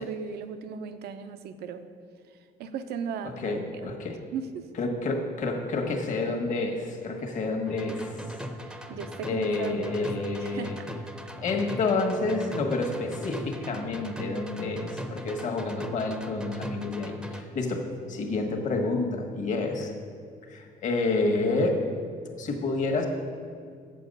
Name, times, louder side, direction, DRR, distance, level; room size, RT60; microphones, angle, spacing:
voice 1, 0.0-1.8 2.6-3.9 4.3-4.6 8.6-10.1 10.4-10.9, right 6 dB, 75° right, 9 dB, 0.7 m, -36 dB
voice 2, 3.4-4.2 4.8-8.2 9.2-10.8 11.4-19.9 20.5-21.8 22.4-23.1, left 3 dB, 45° left, 2 dB, 1.3 m, -29 dB
sound 1, 7.7-17.4, equal, 5° right, 0.7 m, -40 dB
7.7 x 7.3 x 5.4 m, 2.2 s
cardioid pair, 110°, 17 cm